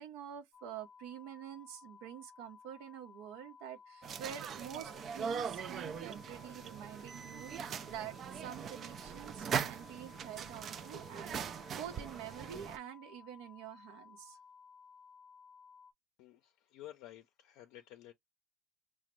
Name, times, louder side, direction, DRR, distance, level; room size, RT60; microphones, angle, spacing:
voice 1, 0.0-14.4, right 10 dB, 75° right, 0.6 m, -47 dB
sound 1, 0.5-15.9, left 6 dB, 35° left, 0.8 m, -58 dB
sound 2, 4.0-12.8, right 7 dB, 40° right, 0.3 m, -41 dB
voice 2, 16.2-18.1, left 13 dB, 70° left, 0.5 m, -53 dB
5.0 x 2.1 x 2.9 m
supercardioid pair, 125°, 0 cm